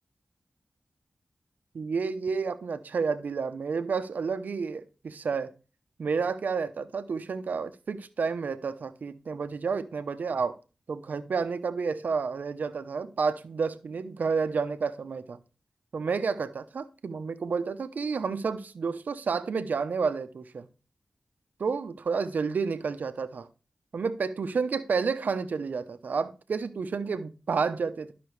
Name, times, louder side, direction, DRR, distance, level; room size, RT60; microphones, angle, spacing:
voice 1, 1.7-5.5 6.0-10.5 10.9-15.4 15.9-20.7 21.6-23.5 23.9-28.1, right 5 dB, 80° right, 0.7 m, -30 dB
12.5 x 5.9 x 3.2 m
cardioid pair, 45°, 3 cm